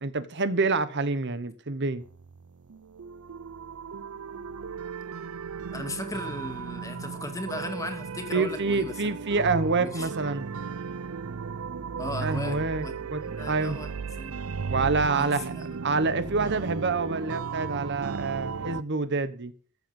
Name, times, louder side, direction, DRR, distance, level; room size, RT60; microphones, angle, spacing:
voice 1, 0.0-2.0 8.3-10.5 12.2-13.8 14.7-19.5, right 3 dB, 50° right, 1.1 m, -27 dB
sound 1, 2.0-18.8, right 5 dB, 70° right, 0.6 m, -36 dB
voice 2, 5.7-9.2 9.8-10.1 12.0-13.9 14.2-14.4 15.1-15.8 16.1-16.6, left 1 dB, 15° left, 2.3 m, -37 dB
14.5 x 7.9 x 7.1 m
head